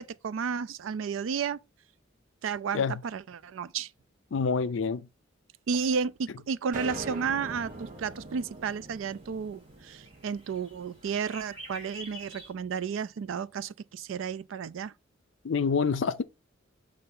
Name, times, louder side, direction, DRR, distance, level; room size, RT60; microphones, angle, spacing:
voice 1, 0.0-1.6 2.4-3.9 5.7-14.9, right 6 dB, 75° right, 0.4 m, -32 dB
voice 2, 4.3-5.1 15.4-16.2, left 5 dB, 70° left, 0.5 m, -27 dB
sound 1, 6.7-11.1, right 2 dB, 40° right, 0.7 m, -42 dB
sound 2, 6.9-12.5, right 1 dB, 25° right, 2.6 m, -50 dB
6.6 x 2.6 x 5.4 m
head